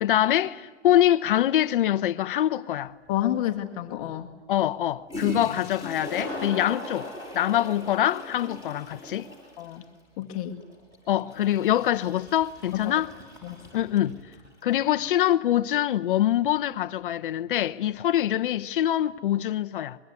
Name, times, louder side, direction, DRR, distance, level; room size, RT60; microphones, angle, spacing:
voice 1, 0.0-2.9 4.5-7.1 7.3-9.3 11.1-13.1 13.7-14.2 14.6-20.0, left 12 dB, 45° left, 1.0 m, -24 dB
voice 2, 3.1-4.3 9.6-9.8 10.2-10.6 12.7-12.9 13.4-13.6, left 12 dB, 30° left, 1.6 m, -29 dB
Toilet flush, 3.1-3.2 4.8-4.9 5.1-14.5, left 1 dB, 10° right, 7.0 m, -39 dB
25.5 x 23.0 x 9.6 m
hypercardioid pair, 155°, 37 cm